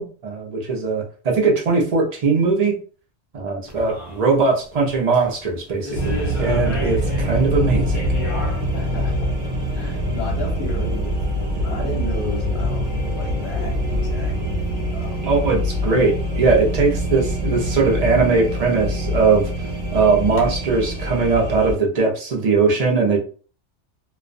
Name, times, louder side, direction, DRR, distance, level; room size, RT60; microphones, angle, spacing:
voice 1, 0.0-2.7 3.3-8.0 15.2-19.5 19.9-23.2, right 4 dB, 45° right, 0 dB, 0.6 m, -20 dB
sound 1, 3.6-20.4, left 1 dB, 35° left, 0.6 m, -39 dB
sound 2, 5.9-21.7, equal, 65° right, 0.9 m, -24 dB
voice 2, 8.7-9.3 9.7-14.6 14.9-15.5, left 2 dB, 60° left, -1 dB, 0.9 m, -34 dB
2.3 x 2.1 x 2.5 m, 0.40 s
omnidirectional pair, 1.2 m